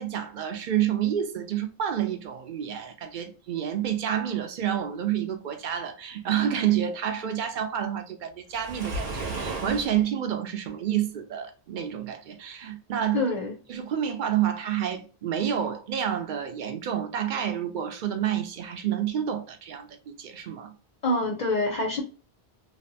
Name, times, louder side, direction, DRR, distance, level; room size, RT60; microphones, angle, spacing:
voice 1, 0.0-13.3 13.7-20.7, right 10 dB, 60° right, 0.6 m, -29 dB
Waves surf, 8.5-10.0, right 2 dB, 75° right, 0.9 m, -33 dB
voice 2, 13.1-13.6 21.0-22.0, left 2 dB, 55° left, 0.5 m, -26 dB
2.7 x 2.1 x 2.6 m
omnidirectional pair, 1.0 m